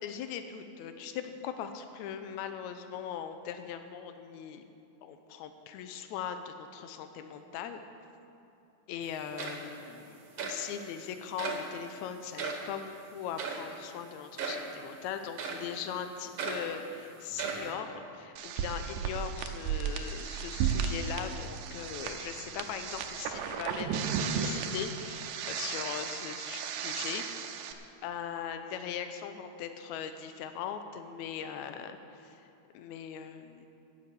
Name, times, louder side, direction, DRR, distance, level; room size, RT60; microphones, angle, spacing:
voice 1, 0.0-4.6 5.0-7.8 8.9-27.2 28.0-32.5 32.7-33.7, left 8 dB, 75° left, 8 dB, 1.9 m, -40 dB
sound 1, 9.0-9.1 9.4-9.9 10.4-10.6 11.4-11.7 12.4-12.7 13.4-13.7 14.4-14.7 15.4-15.7 16.4-16.7 17.3-17.7, right 5 dB, 55° right, 2.1 m, -36 dB
sound 2, 18.4-27.7, right 7 dB, 85° right, 2.4 m, -34 dB
17.5 x 6.9 x 7.0 m, 2.7 s
omnidirectional pair, 3.9 m